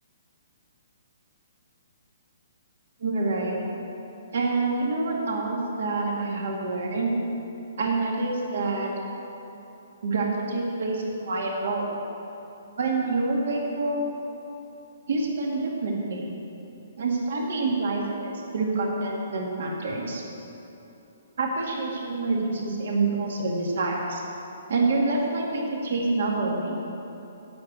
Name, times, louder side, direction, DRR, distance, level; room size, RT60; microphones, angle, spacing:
voice 1, 3.0-3.7 4.3-7.2 7.8-8.9 10.0-12.0 12.8-14.1 15.1-16.3 17.0-20.2 21.4-24.2 24.7-26.8, right 3 dB, 65° right, -1 dB, 2.1 m, -27 dB
8.5 x 7.7 x 8.8 m, 3.0 s
hypercardioid pair, 165°, 0 cm